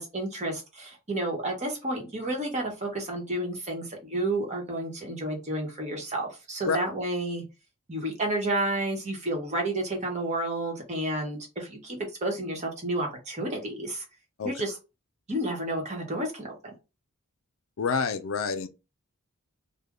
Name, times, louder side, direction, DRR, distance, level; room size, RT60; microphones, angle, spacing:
voice 1, 0.0-7.4 7.9-14.0 14.4-14.8 15.3-16.6, right 1 dB, 30° right, 1.1 m, -31 dB
voice 2, 17.8-18.7, left 5 dB, 65° left, 0.4 m, -27 dB
3.3 x 2.2 x 3.6 m
head